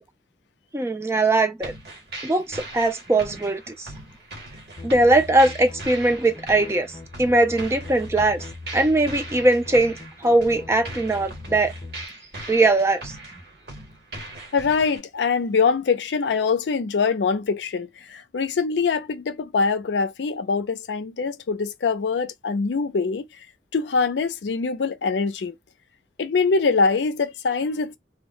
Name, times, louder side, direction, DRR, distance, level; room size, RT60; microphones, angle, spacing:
voice 1, 0.7-1.7 2.2-3.9 4.8-6.9 7.2-8.4 8.7-11.7 12.5-13.2, right 2 dB, 15° right, 0.3 m, -20 dB
sound 1, 1.6-15.0, right 2 dB, 65° right, 1.1 m, -40 dB
sound 2, 4.8-12.1, left 3 dB, 30° left, 0.7 m, -40 dB
voice 2, 14.5-23.3 23.7-25.5 26.2-28.0, left 4 dB, 85° left, 0.4 m, -23 dB
2.3 x 2.1 x 3.7 m
head